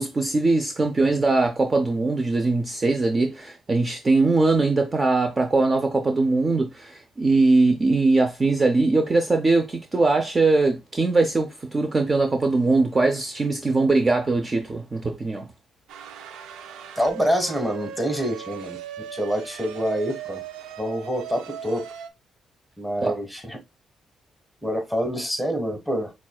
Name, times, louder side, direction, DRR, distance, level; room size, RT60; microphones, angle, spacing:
voice 1, 0.0-15.5 23.0-23.2, right 3 dB, 30° right, 0.5 m, -21 dB
sound 1, 15.9-22.1, right 9 dB, 90° right, 0.4 m, -38 dB
voice 2, 17.0-18.8 19.1-20.4 20.8-21.9 22.8-23.6 24.6-26.1, equal, ahead, 1.3 m, -26 dB
5.9 x 2.4 x 2.3 m
cardioid pair, 90°, 0 cm